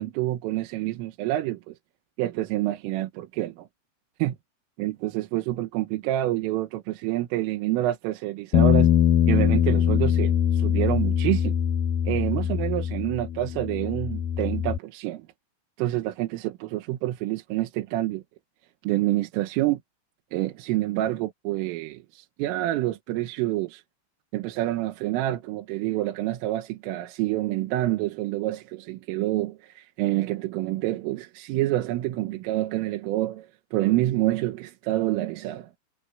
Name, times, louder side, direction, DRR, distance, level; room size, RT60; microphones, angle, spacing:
voice 1, 0.0-1.8 2.2-3.7 4.2-4.3 4.8-8.9 9.3-11.6 12.1-15.3 15.8-18.2 18.8-19.8 20.3-23.8 24.3-35.7, right 16 dB, 80° right, 3.8 m, -27 dB
Bass guitar, 8.5-14.8, left 9 dB, 85° left, 2.0 m, -22 dB
omnidirectional pair, 5.8 m